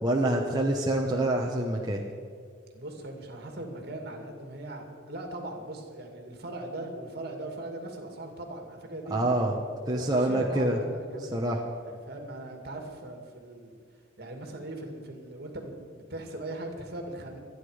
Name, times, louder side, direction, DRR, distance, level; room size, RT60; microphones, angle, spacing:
voice 1, 0.0-2.0 9.1-9.5 9.9-10.8 11.3-11.6, right 1 dB, 20° right, -1 dB, 1.1 m, -26 dB
voice 2, 2.7-9.2 9.5-11.3 11.8-13.7 14.2-17.4, right 1 dB, 50° right, 3 dB, 2.4 m, -40 dB
26.5 x 9.8 x 5.0 m, 2.1 s
head